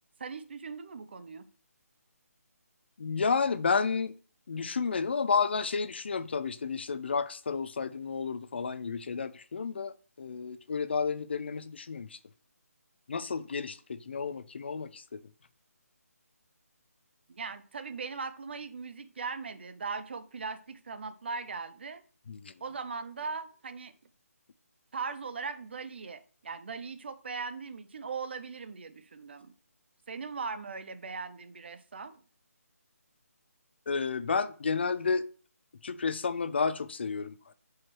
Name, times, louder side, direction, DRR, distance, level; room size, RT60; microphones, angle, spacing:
voice 1, 0.2-1.5 17.3-22.0 22.6-23.9 24.9-29.5 30.1-32.2, right 5 dB, 40° right, 0.5 m, -39 dB
voice 2, 3.0-4.1 4.5-12.2 13.1-15.2 22.3-22.5 33.9-35.3 35.8-37.5, left 5 dB, 45° left, 0.4 m, -31 dB
4.7 x 4.5 x 4.4 m
hypercardioid pair, 170°, 9 cm